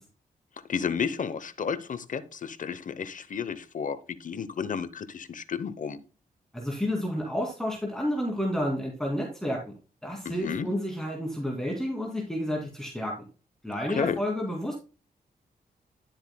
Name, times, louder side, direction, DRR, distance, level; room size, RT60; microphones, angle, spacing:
voice 1, 0.7-6.0 10.2-10.7 13.9-14.2, left 6 dB, 55° left, 0.9 m, -32 dB
voice 2, 6.5-13.1 13.6-14.7, equal, 5° left, 2.6 m, -30 dB
12.0 x 7.7 x 2.3 m
cardioid pair, 90°, 16 cm